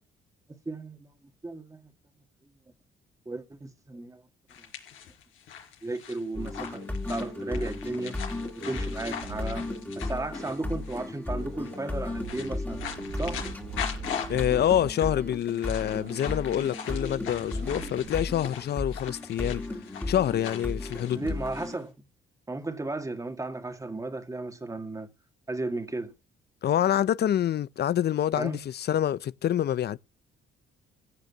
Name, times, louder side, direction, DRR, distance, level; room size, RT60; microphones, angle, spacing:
voice 1, 0.5-1.1 1.4-1.9 3.3-4.2 5.8-6.8 7.1-8.2 8.6-9.7 10.0-12.8 13.1-13.4 21.2-21.9 22.5-25.1 25.5-26.1 28.4-28.6, right 2 dB, 15° right, 2.0 m, -34 dB
sound 1, 4.5-11.1 11.5-11.8 12.1-21.7, left 8 dB, 85° left, 4.6 m, -41 dB
sound 2, 6.3-21.8, left 2 dB, 10° left, 2.5 m, -35 dB
sound 3, 6.7-6.8 7.2-7.7 7.9-8.1 8.4-9.8 10.1-10.6 10.9-11.0 11.3-14.9 15.2-15.3 15.6-16.2 16.4-16.6 16.8-18.1, right 5 dB, 70° right, 5.0 m, -44 dB
voice 2, 14.3-19.8 20.1-21.3 26.6-30.0, left 10 dB, 55° left, 0.6 m, -26 dB
15.5 x 6.6 x 8.3 m
cardioid pair, 90°, 20 cm